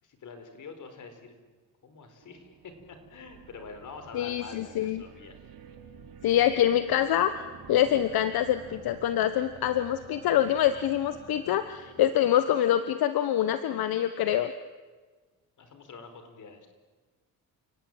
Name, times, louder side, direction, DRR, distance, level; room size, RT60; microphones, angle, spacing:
voice 1, 0.0-1.6 1.8-5.4 15.6-16.7, left 4 dB, 55° left, 7 dB, 4.7 m, -46 dB
sound 1, 2.2-12.7, right 7 dB, 75° right, 3.2 m, -50 dB
voice 2, 4.1-5.0 6.2-7.4 7.7-14.5, left 11 dB, 80° left, 11 dB, 1.2 m, -25 dB
29.5 x 18.0 x 9.1 m, 1.3 s
cardioid pair, 125°, 36 cm